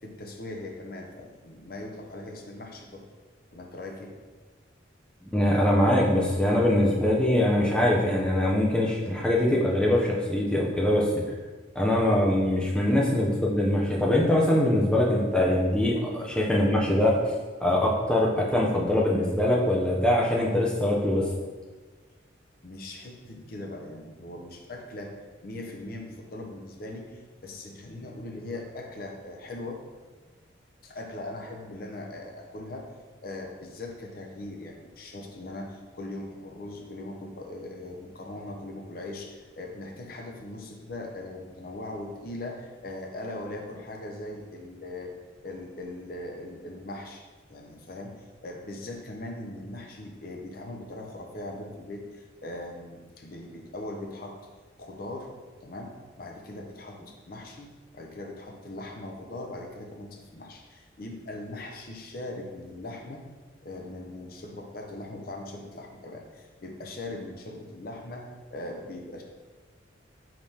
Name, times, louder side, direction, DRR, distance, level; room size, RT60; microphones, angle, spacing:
voice 1, 0.0-3.0 3.5-4.1 15.9-16.0 22.6-25.2 25.4-29.8 30.8-32.9 33.2-45.1 45.4-47.2 47.5-54.4 54.8-55.3 55.6-63.2 63.6-69.2, left 2 dB, 50° left, 2 dB, 0.6 m, -40 dB
voice 2, 5.3-11.1 11.7-21.3, left 1 dB, 5° left, -3 dB, 0.5 m, -23 dB
4.9 x 3.4 x 2.8 m, 1.3 s
head